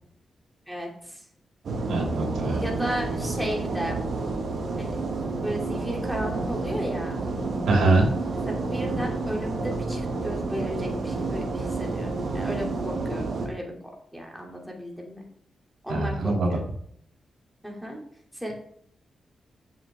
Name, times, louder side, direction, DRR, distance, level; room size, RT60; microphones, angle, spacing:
voice 1, 0.7-1.2 2.6-4.0 4.8-5.0 5.4-7.2 8.4-13.7 14.1-15.2 15.8-16.7 17.6-18.0 18.3-18.5, equal, ahead, -1 dB, 2.9 m, -34 dB
black hole shower drain, 1.6-13.5, right 3 dB, 65° right, 2.1 m, -30 dB
voice 2, 1.9-2.6 7.7-8.1 15.9-16.5, right 2 dB, 90° right, -1 dB, 3.1 m, -23 dB
7.5 x 7.3 x 3.6 m, 0.66 s
cardioid pair, 80°, 0 cm